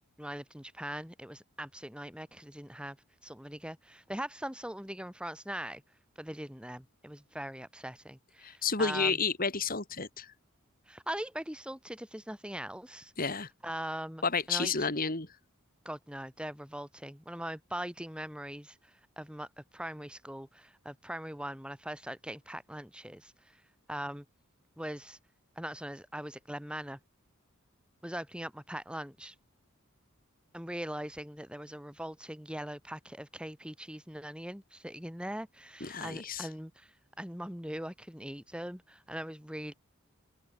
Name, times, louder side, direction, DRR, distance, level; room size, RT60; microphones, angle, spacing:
voice 1, 0.2-3.0 3.2-5.8 6.2-9.2 10.9-13.1 13.6-14.9 15.8-23.6 23.9-24.2 24.8-25.2 25.6-27.0 28.0-29.3 30.5-39.7, right 1 dB, 5° right, 4.6 m, -41 dB
voice 2, 8.4-10.3 13.2-13.5 14.2-15.3 35.8-36.5, left 5 dB, 45° left, 3.3 m, -31 dB
open air
head